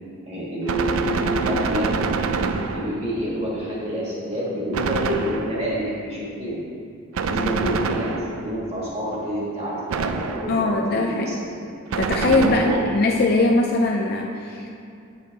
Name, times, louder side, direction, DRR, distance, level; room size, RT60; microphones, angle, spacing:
voice 1, 0.3-2.0 2.3-6.6 7.1-11.5 12.2-12.8, equal, 30° right, -6 dB, 1.5 m, -28 dB
Gunshot gunfire, 0.7-3.2 4.7-5.8 7.1-8.6 9.9-10.7 11.9-13.1, right 5 dB, 70° right, 0.4 m, -26 dB
voice 2, 10.5-11.4 12.0-14.7, left 2 dB, 45° left, 1 dB, 0.4 m, -21 dB
8.4 x 5.4 x 3.9 m, 2.5 s
head